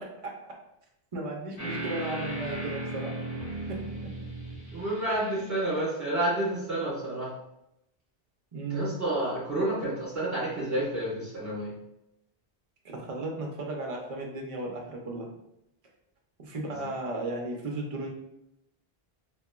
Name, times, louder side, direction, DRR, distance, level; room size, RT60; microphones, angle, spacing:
voice 1, 1.1-3.1 3.7-3.8 8.5-9.0 12.9-15.3 16.4-18.1, right 2 dB, 45° right, 0 dB, 0.5 m, -35 dB
sound 1, 1.6-5.8, right 1 dB, 55° left, 1.1 m, -36 dB
voice 2, 4.7-7.3 8.7-11.7, right 1 dB, 15° right, -8 dB, 1.2 m, -30 dB
2.8 x 2.4 x 2.4 m, 0.83 s
omnidirectional pair, 1.0 m